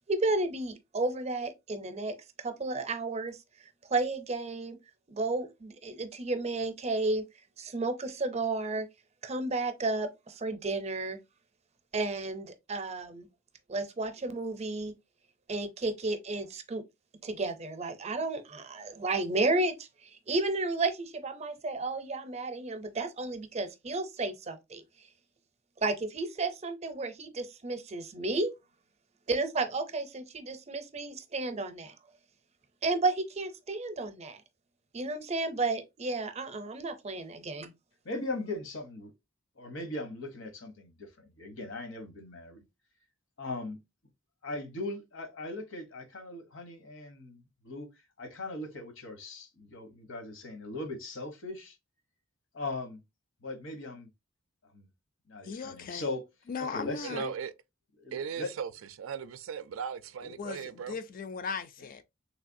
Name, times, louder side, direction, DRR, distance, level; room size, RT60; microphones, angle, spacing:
voice 1, 0.1-3.4 3.9-4.8 5.1-7.2 7.6-8.9 9.2-11.2 11.9-13.3 13.7-14.9 15.5-16.8 17.2-25.1 25.8-28.5 29.3-32.0 32.8-34.4 34.9-37.7, right 3 dB, 35° right, 0.5 m, -32 dB
voice 2, 38.0-39.1 39.6-42.6 43.4-43.8 44.4-47.9 48.2-51.8 52.5-53.0 53.4-54.1 54.7-54.9 55.3-56.2 56.6-57.3 58.0-58.5, left 2 dB, 70° left, 0.9 m, -39 dB
voice 3, 55.4-56.1 56.5-57.3 60.2-62.0, left 5 dB, 45° left, 0.4 m, -38 dB
voice 4, 57.0-57.5 58.1-58.7 59.0-61.0, right 7 dB, 85° right, 0.4 m, -37 dB
3.2 x 3.1 x 2.5 m
head